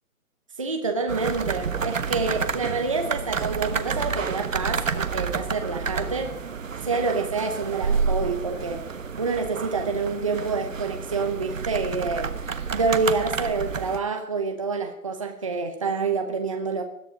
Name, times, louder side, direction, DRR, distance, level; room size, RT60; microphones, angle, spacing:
voice 1, 0.6-6.3 6.8-8.9 9.2-12.3 12.7-16.8, right 4 dB, 20° right, 4 dB, 1.0 m, -27 dB
sound 1, 1.1-14.0, right 5 dB, 60° right, 1.3 m, -29 dB
20.0 x 13.5 x 5.2 m, 0.73 s
hypercardioid pair, 175°, 44 cm